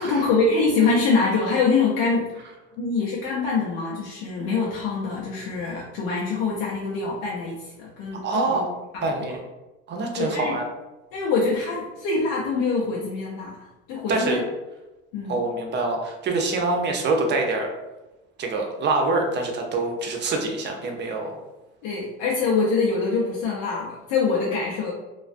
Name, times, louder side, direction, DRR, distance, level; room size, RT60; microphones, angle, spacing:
voice 1, 0.0-2.3 2.8-8.4 9.2-9.3 10.2-10.6 11.1-13.6 13.9-14.4 15.1-15.4 21.8-24.9, left 4 dB, 80° left, -4 dB, 0.6 m, -24 dB
voice 2, 8.1-8.7 9.0-9.4 9.9-10.7 14.1-14.4 15.3-17.7 18.4-21.4, right 3 dB, 40° right, 2 dB, 0.6 m, -25 dB
2.3 x 2.2 x 2.5 m, 1.1 s
supercardioid pair, 100°, 29 cm